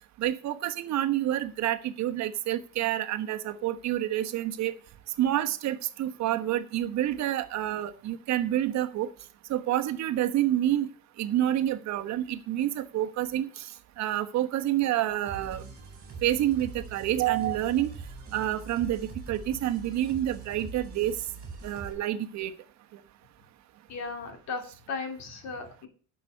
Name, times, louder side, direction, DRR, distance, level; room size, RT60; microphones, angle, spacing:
voice 1, 0.2-4.7 5.2-9.1 9.5-10.9 11.2-13.7 14.0-15.6 16.2-17.9 18.3-21.2 21.6-22.5, right 12 dB, 60° right, 9 dB, 1.1 m, -28 dB
sound 1, 15.3-21.9, right 4 dB, 30° right, 4.8 m, -43 dB
voice 2, 23.9-25.9, left 4 dB, 60° left, 6 dB, 2.8 m, -36 dB
11.0 x 6.9 x 6.4 m, 0.42 s
cardioid pair, 180°, 31 cm